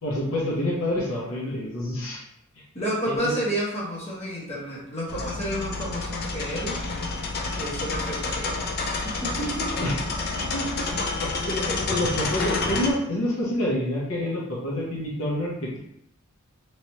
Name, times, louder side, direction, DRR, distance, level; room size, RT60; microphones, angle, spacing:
voice 1, 0.0-2.2 3.1-3.3 9.8-10.0 10.5-10.8 11.2-15.8, left 1 dB, 65° left, -4 dB, 0.9 m, -28 dB
voice 2, 2.7-6.8 7.6-9.9 10.4-11.2, equal, 30° left, -6 dB, 1.0 m, -31 dB
sound 1, 5.1-12.9, left 3 dB, 45° left, 0.5 m, -29 dB
3.1 x 3.0 x 2.8 m, 0.74 s
head